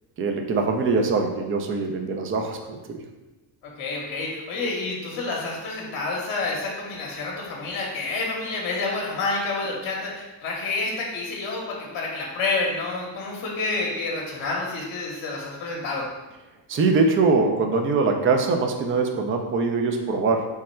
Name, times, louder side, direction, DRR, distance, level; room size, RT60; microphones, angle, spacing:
voice 1, 0.2-3.0 16.7-20.5, right 4 dB, 25° right, 4 dB, 0.4 m, -23 dB
voice 2, 3.6-16.1, left 3 dB, 45° left, -2 dB, 0.9 m, -29 dB
3.6 x 2.1 x 4.3 m, 1.1 s
supercardioid pair, 85°, 49 cm